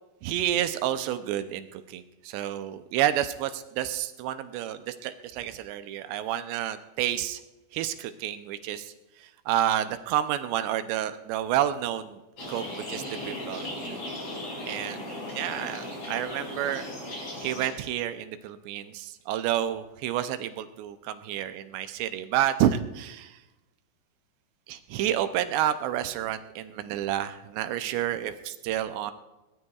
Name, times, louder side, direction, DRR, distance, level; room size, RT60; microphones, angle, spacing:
voice 1, 0.2-7.4 7.7-8.9 9.2-12.2 12.5-13.8 14.7-16.8 17.4-23.4 24.7-29.1, right 11 dB, 80° right, 10 dB, 2.6 m, -30 dB
sound 1, 12.4-17.7, left 1 dB, 40° left, 6.2 m, -37 dB
22.0 x 19.0 x 2.4 m, 1.0 s
omnidirectional pair, 5.2 m